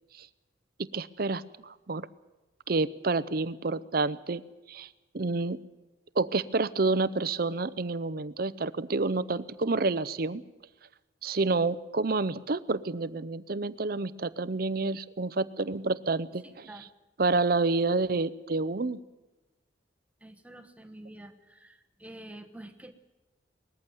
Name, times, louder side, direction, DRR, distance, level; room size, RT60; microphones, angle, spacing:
voice 1, 0.8-2.1 2.7-4.4 4.7-4.9 5.1-5.6 6.2-10.4 11.2-16.7 17.2-19.0, right 3 dB, 50° right, 16 dB, 0.6 m, -29 dB
voice 2, 16.4-16.9 20.2-22.9, right 1 dB, 5° right, 7 dB, 1.1 m, -48 dB
20.0 x 14.5 x 9.3 m, 1.1 s
head